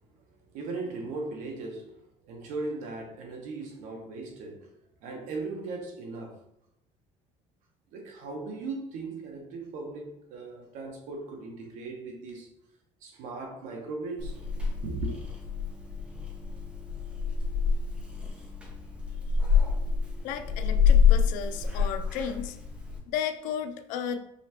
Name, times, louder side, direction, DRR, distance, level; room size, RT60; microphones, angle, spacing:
voice 1, 0.2-2.0 2.2-4.7 5.0-6.4 7.9-12.5 13.0-14.4 14.8-15.2, right 3 dB, 70° right, 1.1 m, -38 dB
Purr / Meow, 14.2-23.0, left 6 dB, 10° right, 0.9 m, -27 dB
voice 2, 20.2-22.6 23.1-24.2, left 8 dB, 80° left, 0.5 m, -34 dB
5.4 x 3.3 x 3.0 m
cardioid pair, 155°, 13 cm